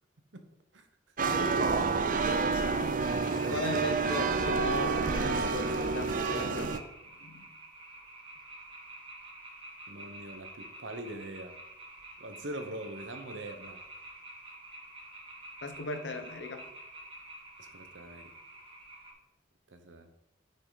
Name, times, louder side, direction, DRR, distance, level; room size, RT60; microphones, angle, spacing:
sound 1, 1.2-6.8, right 4 dB, 45° right, 0.6 m, -29 dB
voice 1, 1.2-1.8 2.8-3.7 9.9-11.6 12.2-13.8 17.6-18.3 19.7-20.1, right 1 dB, 90° right, 7 dB, 1.1 m, -43 dB
sound 2, 3.0-19.1, right 2 dB, 30° right, 2.1 m, -48 dB
voice 2, 3.5-6.7 7.2-7.5 15.6-16.6, left 2 dB, 70° left, 7 dB, 1.0 m, -37 dB
9.4 x 5.8 x 4.1 m, 0.86 s
head